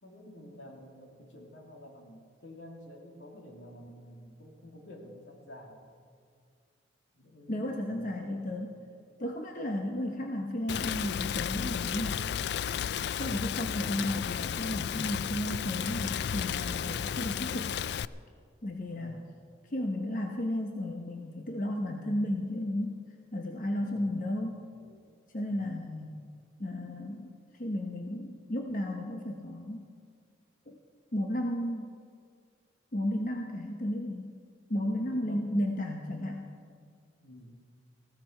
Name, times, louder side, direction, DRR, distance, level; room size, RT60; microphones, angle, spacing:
voice 1, 0.0-5.8 7.1-8.5 18.9-19.4 23.7-24.2 24.7-25.0 25.5-25.7 35.1-35.8 37.2-37.6, left 1 dB, 80° left, 0 dB, 2.7 m, -50 dB
voice 2, 7.5-8.7 9.2-12.2 13.2-17.8 18.6-19.2 19.7-23.0 23.3-24.7 25.3-26.2 26.6-27.3 27.6-29.9 30.7-30.8 31.1-31.9 32.9-34.4 34.7-36.5, left 1 dB, 45° left, 2 dB, 1.0 m, -33 dB
Rain, 10.7-18.1, left 8 dB, 60° left, 0.3 m, -33 dB
18.5 x 15.5 x 4.4 m, 2.1 s
head